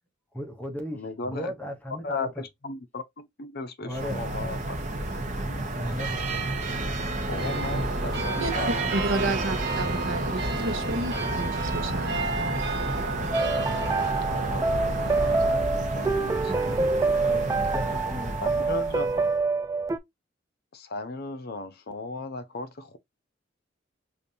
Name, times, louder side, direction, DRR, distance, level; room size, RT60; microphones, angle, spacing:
voice 1, 0.3-2.4 3.8-4.2 5.7-6.2 16.5-18.7, equal, 10° left, 0.8 m, -36 dB
voice 2, 0.9-1.5 2.0-4.8 5.1-5.7 7.3-9.4 14.5-14.9 15.2-16.8 18.4-19.3 20.7-23.0, left 3 dB, 50° left, 0.7 m, -36 dB
sound 1, 3.9-19.4, right 2 dB, 40° right, 0.9 m, -32 dB
sound 2, 7.4-15.5, right 2 dB, 55° right, 1.3 m, -32 dB
voice 3, 8.9-12.6, right 2 dB, 75° right, 0.9 m, -31 dB
sound 3, 13.3-20.0, right 3 dB, 15° right, 0.3 m, -26 dB
5.1 x 2.5 x 2.7 m
head